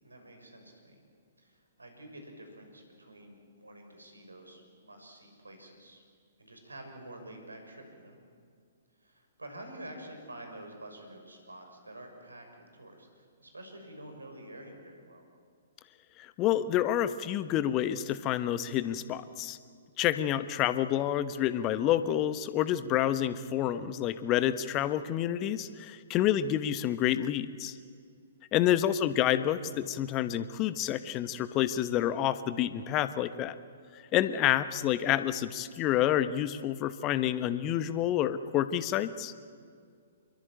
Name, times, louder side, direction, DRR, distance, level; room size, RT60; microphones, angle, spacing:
voice 1, 0.0-1.0 1.4-6.0 6.4-8.2 9.0-15.3 26.1-26.5 28.7-29.0, right 1 dB, 75° right, 4 dB, 6.3 m, -48 dB
voice 2, 16.2-19.6 20.0-27.8 28.5-33.6 34.1-39.3, left 11 dB, 25° left, 13 dB, 1.1 m, -28 dB
26.5 x 22.5 x 9.0 m, 2.2 s
figure-of-eight pair, 120°, 0 cm